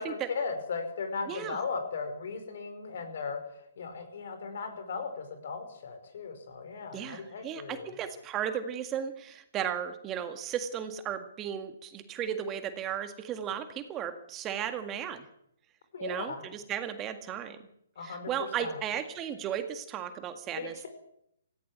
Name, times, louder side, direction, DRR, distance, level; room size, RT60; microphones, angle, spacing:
voice 1, 0.0-7.9 15.9-16.4 18.0-18.3 18.6-18.8 20.5-20.9, left 5 dB, 60° left, 8 dB, 5.3 m, -37 dB
voice 2, 1.3-1.6 6.9-15.3 16.0-17.6 18.0-20.9, right 9 dB, 20° right, 8 dB, 1.8 m, -35 dB
17.0 x 16.0 x 9.7 m, 0.76 s
hypercardioid pair, 135°, 0 cm